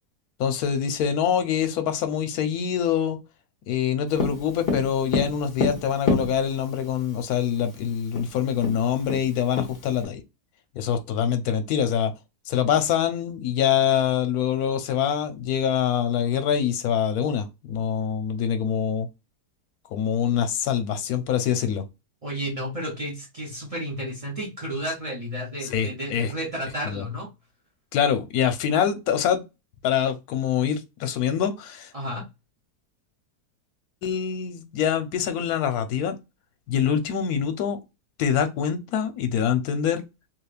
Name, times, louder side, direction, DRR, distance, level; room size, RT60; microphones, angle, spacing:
voice 1, 0.4-3.2 3.7-10.2 10.8-12.1 12.5-19.1 19.9-21.8 25.6-26.3 26.8-27.0 27.9-29.4 29.8-31.9 34.0-36.2 36.7-37.8 38.2-40.0, left 8 dB, 70° left, 1.1 m, -25 dB
Tap, 4.2-6.8 7.8-7.9 8.2-8.3 8.6-10.0, left 4 dB, 45° left, 1.3 m, -27 dB
voice 2, 22.2-27.3 31.9-32.2, equal, 65° right, 0.3 m, -32 dB
3.3 x 2.9 x 2.3 m
omnidirectional pair, 1.8 m